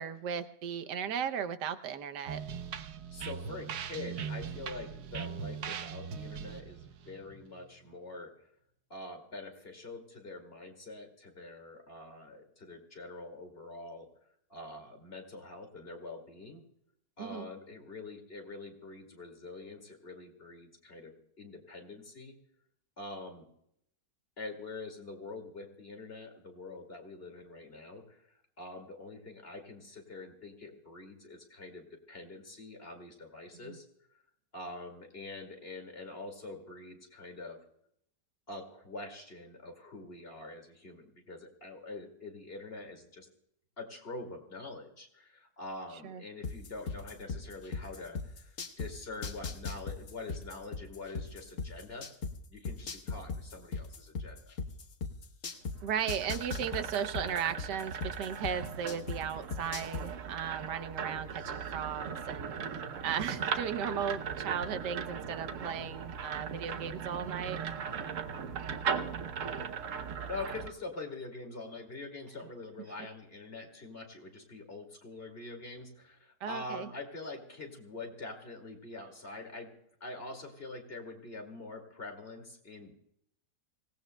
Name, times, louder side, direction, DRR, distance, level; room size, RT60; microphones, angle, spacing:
voice 1, 0.0-2.4 17.2-17.5 33.7-33.8 46.0-46.2 55.8-62.5 63.0-67.7 76.4-76.9, right 8 dB, 90° right, 10 dB, 1.5 m, -36 dB
sound 1, 2.3-7.9, right 7 dB, 70° right, 1.3 m, -40 dB
voice 2, 3.1-8.5 8.9-14.1 14.5-16.6 17.2-22.4 23.0-23.5 24.4-33.9 34.1-34.2 34.5-37.6 38.5-43.3 43.8-52.1 52.5-54.5 70.2-79.7 80.0-82.9, left 2 dB, 35° left, 3 dB, 2.5 m, -45 dB
sound 2, 46.4-48.9 49.2-52.3 52.6-55.7 56.1-59.2 59.5-60.0, left 4 dB, 55° left, 1.4 m, -36 dB
sound 3, 55.7-70.7, right 7 dB, 55° right, 1.1 m, -38 dB
25.5 x 17.5 x 2.2 m, 0.74 s
omnidirectional pair, 1.8 m